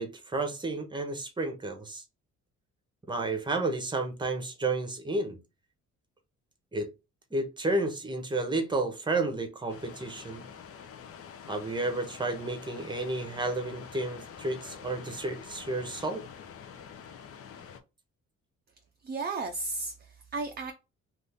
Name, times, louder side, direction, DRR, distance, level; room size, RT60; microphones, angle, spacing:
voice 1, 0.0-2.0 3.1-5.4 6.7-6.9 7.3-10.4 11.5-16.2, right 2 dB, 15° right, 0.9 m, -31 dB
sound 1, 9.7-17.8, left 7 dB, 50° left, 0.6 m, -46 dB
voice 2, 19.0-20.7, right 3 dB, 35° right, 0.5 m, -34 dB
2.7 x 2.6 x 3.5 m
cardioid pair, 90°, 30 cm